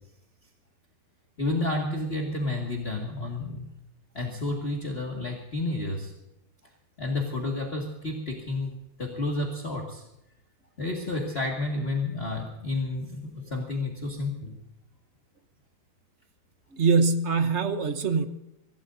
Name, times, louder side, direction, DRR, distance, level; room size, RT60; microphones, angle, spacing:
voice 1, 1.4-3.6 4.1-6.1 7.0-10.0 10.8-14.6, left 2 dB, 30° left, -1 dB, 2.1 m, -31 dB
voice 2, 16.7-18.3, right 4 dB, 50° right, 9 dB, 0.8 m, -23 dB
25.5 x 17.0 x 2.7 m, 0.88 s
omnidirectional pair, 2.3 m